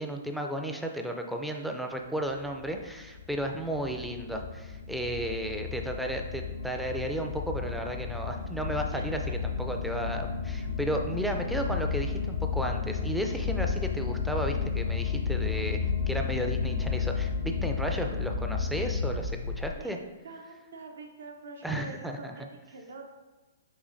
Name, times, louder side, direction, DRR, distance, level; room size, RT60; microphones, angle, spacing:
voice 1, 0.0-19.3 19.6-20.0 21.6-22.3, right 1 dB, ahead, 3 dB, 0.4 m, -33 dB
sound 1, 2.5-19.8, left 6 dB, 60° left, 0.5 m, -32 dB
voice 2, 8.9-9.4 19.7-23.0, right 3 dB, 70° right, 3 dB, 0.6 m, -45 dB
6.3 x 2.7 x 2.5 m, 1.2 s
figure-of-eight pair, 120°, 0 cm